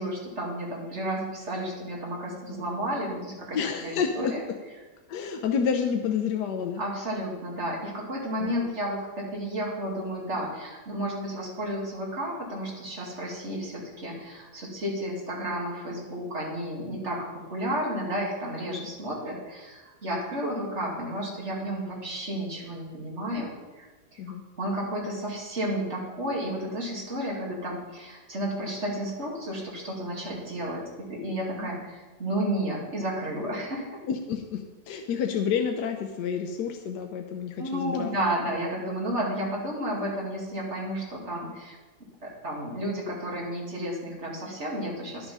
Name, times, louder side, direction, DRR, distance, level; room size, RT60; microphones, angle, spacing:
voice 1, 0.0-4.4 6.8-23.9 24.1-24.2 24.6-34.0 37.6-41.8 42.2-45.3, right 1 dB, 40° right, -3 dB, 2.7 m, -32 dB
voice 2, 3.5-4.3 5.1-6.8 8.4-8.5 17.1-17.2 24.2-24.4 31.6-31.7 34.1-38.1, left 7 dB, 75° left, 4 dB, 1.3 m, -29 dB
11.0 x 7.1 x 5.5 m, 1.2 s
omnidirectional pair, 1.8 m